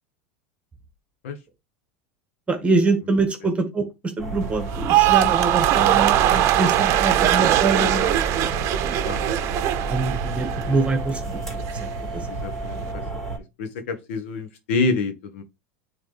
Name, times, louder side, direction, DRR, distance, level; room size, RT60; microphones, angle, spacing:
voice 1, 2.5-8.1 9.8-11.4 11.8-12.3, right 3 dB, 20° right, 1.8 m, -24 dB
Soda Machine Bottle Drop (Binaural), 4.2-13.4, right 3 dB, 5° left, 3.3 m, -30 dB
sound 1, 4.7-11.0 11.3-11.8, right 13 dB, 50° right, 0.8 m, -21 dB
voice 2, 12.3-13.0 13.6-15.4, left 3 dB, 75° left, 1.6 m, -27 dB
9.4 x 3.7 x 3.4 m
hypercardioid pair, 100°, 7 cm